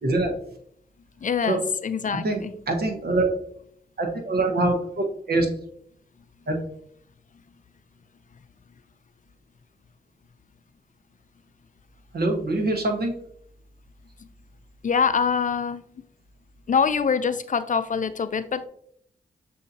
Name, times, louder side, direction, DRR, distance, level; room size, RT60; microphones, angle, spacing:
voice 1, 0.0-0.3 1.5-1.6 2.2-3.3 4.0-5.5 6.5-6.6 12.1-13.1, right 2 dB, 60° right, 3 dB, 1.2 m, -24 dB
voice 2, 1.2-2.5 14.8-15.9 16.7-18.7, left 6 dB, 45° left, 11 dB, 0.4 m, -24 dB
7.0 x 2.8 x 2.7 m, 0.66 s
cardioid pair, 45°, 18 cm